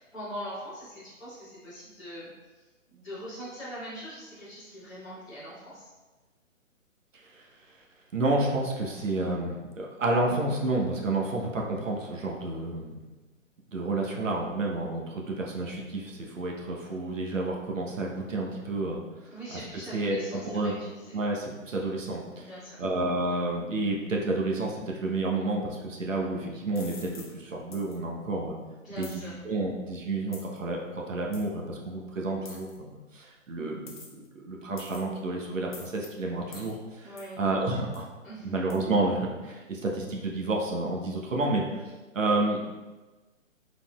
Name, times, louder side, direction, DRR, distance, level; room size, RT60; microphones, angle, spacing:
voice 1, 0.0-5.9 19.3-21.2 22.4-22.8 28.8-29.3 37.0-37.4 38.2-38.5, equal, ahead, -22 dB, 0.6 m, -42 dB
voice 2, 8.1-13.0 13.7-19.0 19.5-19.6 19.9-20.7 21.1-22.5 22.8-28.6 29.0-37.1 37.4-38.1 38.4-41.8 42.1-42.6, right 2 dB, 70° right, -1 dB, 1.0 m, -30 dB
sound 1, 26.8-27.3 27.7-28.0 29.0-29.2 30.3-30.6 31.3-31.5 32.5-32.8 33.9-34.3 34.8-35.2 35.7-36.1 36.5-36.7 37.2-37.3 37.9-38.1 38.7-38.8, left 4 dB, 35° left, 0.7 m, -46 dB
5.0 x 4.0 x 2.3 m, 1.2 s
figure-of-eight pair, 145°, 40 cm